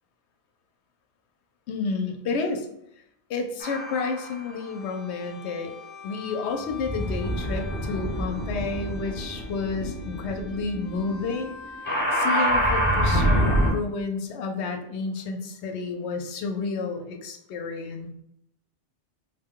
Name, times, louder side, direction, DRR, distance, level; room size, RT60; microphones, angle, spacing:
voice 1, 1.7-2.7 3.3-5.7 6.0-11.5 12.1-18.1, left 4 dB, 75° left, 5 dB, 0.9 m, -30 dB
sound 1, 3.6-4.4 5.2-13.7, equal, 10° left, 0.8 m, -27 dB
4.0 x 2.2 x 3.6 m, 0.78 s
omnidirectional pair, 1.1 m